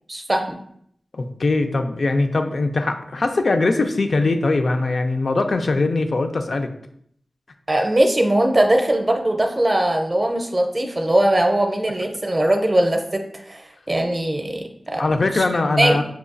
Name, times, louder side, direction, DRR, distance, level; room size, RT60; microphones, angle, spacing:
voice 1, 0.1-0.6 7.7-15.4 15.8-16.0, right 1 dB, 30° right, 3 dB, 0.6 m, -20 dB
voice 2, 1.1-6.7 15.0-16.0, left 3 dB, 65° left, 6 dB, 0.4 m, -21 dB
5.7 x 2.3 x 2.5 m, 0.68 s
wide cardioid pair, 60°, 0 cm